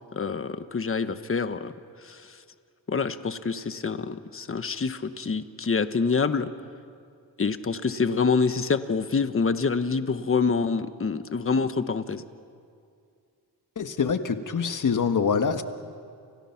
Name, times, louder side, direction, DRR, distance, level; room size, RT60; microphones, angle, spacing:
voice 1, 0.1-1.7 2.0-2.4 2.9-6.5 7.4-12.2, left 5 dB, 35° left, 10 dB, 1.3 m, -26 dB
voice 2, 13.7-15.6, left 6 dB, 50° left, 8 dB, 1.7 m, -25 dB
30.0 x 29.5 x 6.0 m, 2.3 s
cardioid pair, 90°, 39 cm